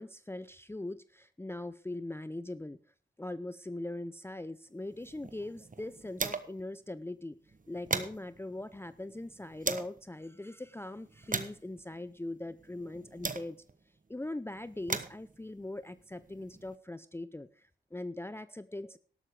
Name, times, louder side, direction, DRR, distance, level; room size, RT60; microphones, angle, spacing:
voice 1, 0.0-2.8 3.2-7.4 7.7-13.6 14.1-19.0, left 2 dB, 10° left, 14 dB, 0.6 m, -41 dB
sound 1, 4.9-6.7 7.0-7.1 7.5-10.0 10.6-13.8 14.5-16.8, right 4 dB, 40° right, 1.3 m, -40 dB
12.5 x 12.0 x 5.0 m, 0.43 s
cardioid pair, 40°, 21 cm